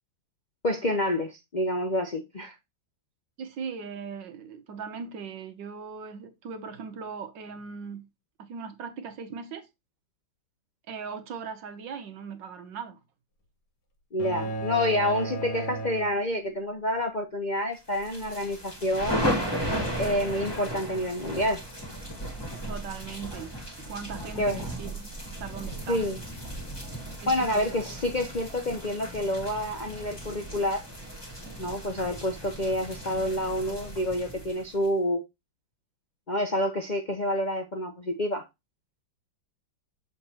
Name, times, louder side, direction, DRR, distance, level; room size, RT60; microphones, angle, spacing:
voice 1, 0.6-2.5 14.1-19.3 20.0-21.6 24.4-24.7 25.9-26.2 27.3-30.8 31.6-35.2 36.3-38.4, left 1 dB, 70° left, 0.4 m, -28 dB
voice 2, 3.4-8.1 8.4-9.7 10.9-13.0 22.5-26.1 27.2-27.6, right 6 dB, 70° right, 1.5 m, -39 dB
sound 1, 14.2-16.7, right 2 dB, 50° left, 1.6 m, -35 dB
sound 2, 17.9-34.9, equal, 15° left, 1.8 m, -35 dB
7.0 x 3.7 x 4.3 m
omnidirectional pair, 2.1 m